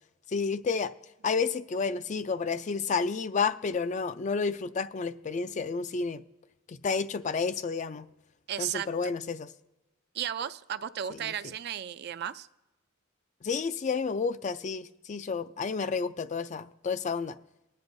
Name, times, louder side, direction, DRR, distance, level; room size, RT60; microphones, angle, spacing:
voice 1, 0.3-0.9 1.2-6.2 6.7-8.1 8.6-9.5 11.1-11.3 13.4-17.4, left 5 dB, 35° left, 0.3 m, -30 dB
voice 2, 8.5-8.9 10.1-12.5, right 9 dB, 50° right, 0.3 m, -34 dB
20.0 x 9.5 x 2.6 m
head